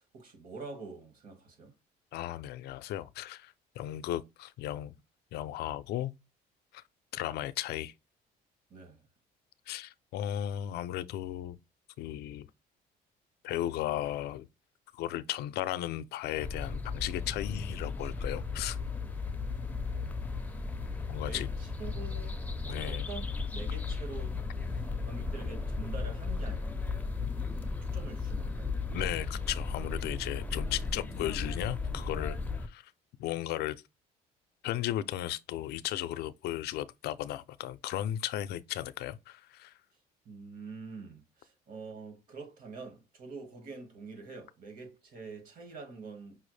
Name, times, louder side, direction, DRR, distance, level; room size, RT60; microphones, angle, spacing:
voice 1, 0.0-1.7 8.7-9.1 21.2-23.3 23.5-24.4 24.6-26.7 27.8-28.7 40.2-46.4, right 4 dB, 55° right, 1.6 m, -46 dB
voice 2, 2.1-5.0 5.3-6.1 6.7-6.8 7.1-7.9 9.7-11.6 12.0-12.5 13.4-14.5 14.9-18.8 21.1-21.5 22.7-23.1 28.9-32.4 32.7-32.9 33.2-33.8 34.6-39.7, left 13 dB, 75° left, 0.4 m, -35 dB
sound 1, 16.4-32.7, left 4 dB, 10° left, 0.5 m, -35 dB
5.5 x 2.0 x 3.1 m
cardioid pair, 110°, 17 cm